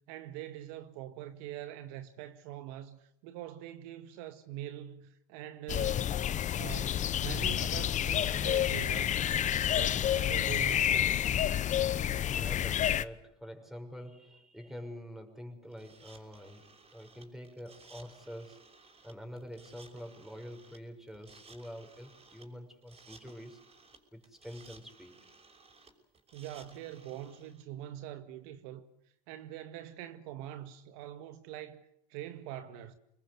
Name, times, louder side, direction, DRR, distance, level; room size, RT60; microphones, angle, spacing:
voice 1, 0.1-6.2 6.5-9.2 9.6-11.6 26.3-28.9 29.3-32.9, right 12 dB, 70° right, 2.0 m, -44 dB
sound 1, 5.7-13.0, left 10 dB, 35° left, 1.0 m, -29 dB
voice 2, 12.0-18.6 19.0-23.6 24.1-25.3, equal, ahead, 6.3 m, -47 dB
sound 2, 15.7-27.6, right 4 dB, 30° right, 6.3 m, -58 dB
27.0 x 21.0 x 8.2 m
hypercardioid pair, 90°, 20 cm